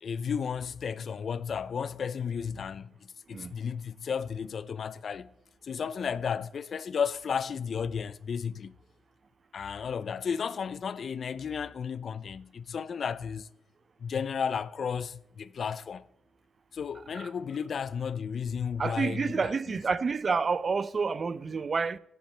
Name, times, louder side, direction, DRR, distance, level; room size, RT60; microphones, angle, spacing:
voice 1, 0.0-5.3 5.6-8.8 9.5-13.5 14.0-16.1 16.7-19.8, left 6 dB, 55° left, 0.4 m, -33 dB
voice 2, 18.8-22.0, right 5 dB, 40° right, 0.4 m, -29 dB
13.0 x 10.0 x 3.3 m
cardioid pair, 85°, 0 cm